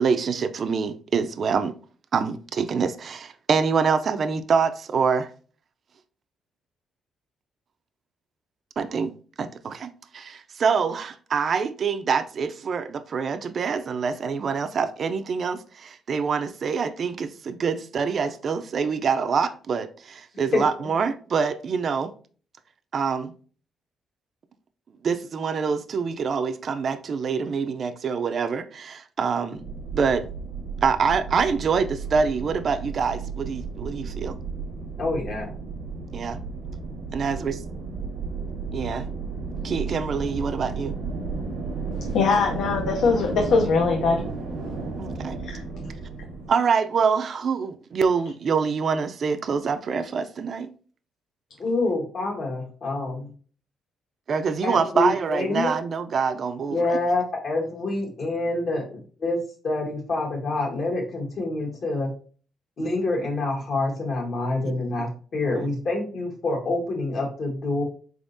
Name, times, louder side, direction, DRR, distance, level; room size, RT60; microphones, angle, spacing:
voice 1, 0.0-1.7 2.1-5.3 8.8-9.1 9.4-22.1 22.9-23.3 25.0-29.6 29.9-30.3 30.8-34.4 36.1-36.4 37.1-37.6 38.7-39.1 39.6-40.9 45.0-45.4 46.5-50.7 54.3-57.0 64.6-64.7 65.3-65.7, right 5 dB, 50° right, 0.4 m, -25 dB
sound 1, 29.6-46.5, right 4 dB, 85° right, 0.8 m, -33 dB
voice 2, 35.0-35.5 51.6-53.3 54.6-55.7 56.7-59.4 59.6-62.1 62.8-67.8, left 2 dB, 60° left, 1.3 m, -27 dB
voice 3, 42.1-44.2 45.5-45.6, left 4 dB, 80° left, 0.6 m, -21 dB
4.0 x 3.6 x 2.6 m
cardioid pair, 90°, 0 cm